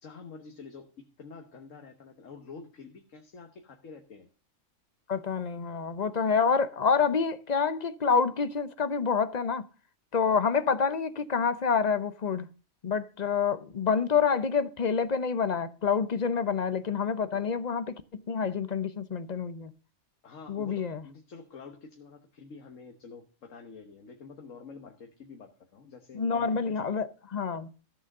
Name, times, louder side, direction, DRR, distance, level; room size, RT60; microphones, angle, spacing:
voice 1, 0.0-4.3 16.4-16.7 17.3-17.6 20.2-26.9, left 5 dB, 80° left, 1.6 m, -48 dB
voice 2, 5.1-9.7 10.1-12.5 12.8-19.7 20.5-21.0 26.1-27.7, left 6 dB, 40° left, 0.7 m, -27 dB
14.5 x 6.2 x 6.5 m
omnidirectional pair, 1.3 m